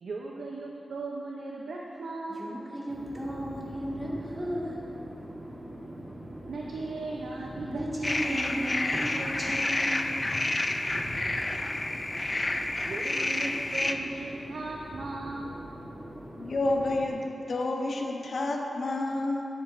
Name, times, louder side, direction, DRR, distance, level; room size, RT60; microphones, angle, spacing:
voice 1, 0.0-2.5 6.5-8.7 12.8-15.6, right 3 dB, 90° right, -2 dB, 0.5 m, -37 dB
voice 2, 2.3-4.9 7.7-10.1, equal, 15° right, -6 dB, 1.7 m, -35 dB
sound 1, 2.9-17.1, right 1 dB, 35° right, 1.3 m, -43 dB
sound 2, 8.0-13.9, left 2 dB, 30° left, 0.4 m, -29 dB
voice 3, 16.4-19.4, left 2 dB, 65° left, 2 dB, 0.8 m, -29 dB
10.0 x 7.8 x 2.5 m, 2.9 s
wide cardioid pair, 80°, 0 cm